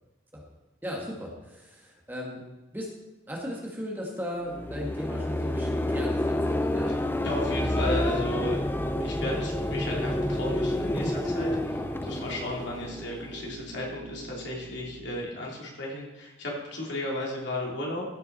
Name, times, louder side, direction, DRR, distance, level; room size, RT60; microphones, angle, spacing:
voice 1, 0.8-2.4 2.7-2.9 3.3-7.0, equal, 10° right, -2 dB, 1.4 m, -37 dB
sound 1, 4.5-13.5, left 1 dB, 10° left, 0.4 m, -29 dB
voice 2, 6.9-8.6 9.0-18.0, left 1 dB, 65° left, -3 dB, 2.9 m, -34 dB
sound 2, 8.9-15.2, right 1 dB, 65° right, 0.8 m, -43 dB
15.0 x 6.0 x 4.0 m, 1.0 s
head